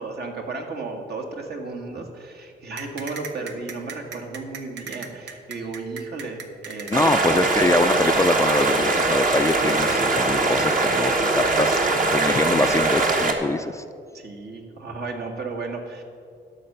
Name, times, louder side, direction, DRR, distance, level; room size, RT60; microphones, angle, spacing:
voice 1, 0.0-7.5 14.1-16.0, right 3 dB, 65° right, 2 dB, 1.7 m, -34 dB
sound 1, 2.8-10.0, right 6 dB, 85° right, 0.9 m, -37 dB
voice 2, 6.9-13.8, left 2 dB, 15° left, 10 dB, 0.4 m, -24 dB
sound 2, 6.9-13.3, right 2 dB, 50° right, 1.4 m, -21 dB
12.5 x 5.8 x 6.6 m, 2.2 s
cardioid pair, 85°, 18 cm